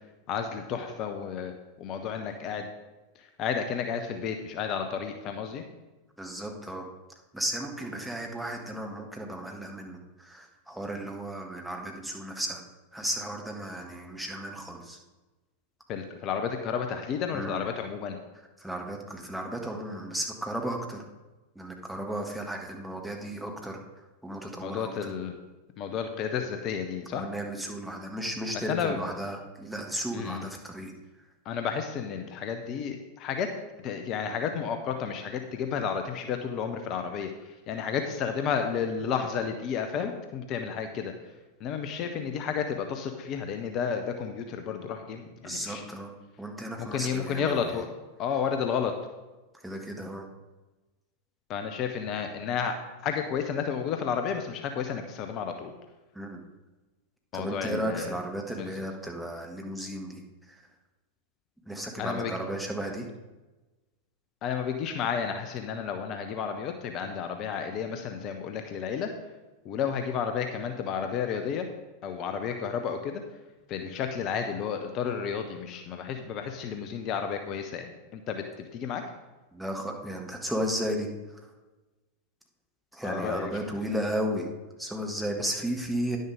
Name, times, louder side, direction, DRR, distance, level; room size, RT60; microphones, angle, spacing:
voice 1, 0.3-1.5 1.8-2.7 3.2-5.6 15.9-18.2 24.6-25.3 25.8-27.2 28.7-29.0 30.1-30.4 31.4-33.5 33.8-41.1 41.6-45.8 46.8-47.9 48.2-48.9 51.5-52.8 53.0-55.7 57.3-58.2 58.6-58.7 62.0-62.3 64.4-69.1 69.6-71.7 72.0-73.2 73.7-79.0 83.0-83.5, left 7 dB, 35° left, 6 dB, 0.8 m, -32 dB
voice 2, 6.2-6.9 7.3-12.6 12.9-15.0 17.3-17.6 18.6-21.0 21.5-23.8 24.2-25.1 27.1-30.9 45.4-46.1 46.4-47.6 49.6-50.3 56.1-56.4 57.3-60.2 60.5-60.6 61.6-63.1 79.5-81.4 82.9-84.5 84.8-86.2, right 1 dB, ahead, 1 dB, 1.5 m, -34 dB
10.5 x 6.6 x 5.0 m, 1.2 s
figure-of-eight pair, 90°, 0 cm